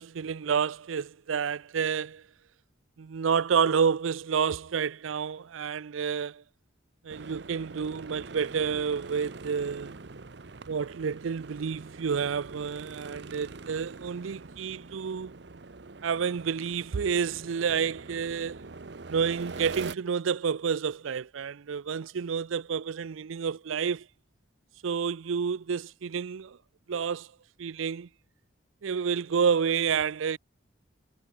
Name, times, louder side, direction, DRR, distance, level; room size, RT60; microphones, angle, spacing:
voice 1, 0.0-2.2 3.0-6.4 7.0-10.0 10.7-15.3 16.0-18.6 19.1-24.1 24.8-26.6 26.9-27.3 27.6-28.1 28.8-30.4, right 6 dB, 90° right, 0.5 m, -29 dB
sound 1, 7.1-20.0, right 3 dB, 60° right, 0.8 m, -44 dB
head